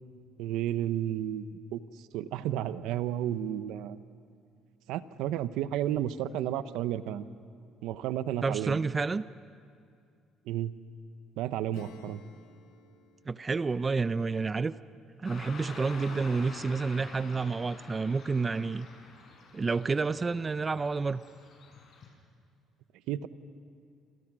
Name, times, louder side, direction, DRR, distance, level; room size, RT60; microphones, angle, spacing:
voice 1, 0.4-1.8 2.1-4.0 4.9-7.3 7.8-8.8 10.5-10.7 11.4-12.2 23.1-23.3, right 11 dB, 80° right, 13 dB, 0.9 m, -32 dB
voice 2, 8.4-9.3 13.3-14.7 15.2-18.9 19.5-21.2, right 4 dB, 30° right, 15 dB, 0.6 m, -29 dB
Acoustic guitar / Strum, 11.7-16.0, left 6 dB, 80° left, 2.0 m, -56 dB
Car passing by / Traffic noise roadway noise, 15.2-22.1, left 3 dB, 50° left, 6.8 m, -48 dB
27.5 x 27.5 x 6.2 m, 2.4 s
supercardioid pair, 85°, 0 cm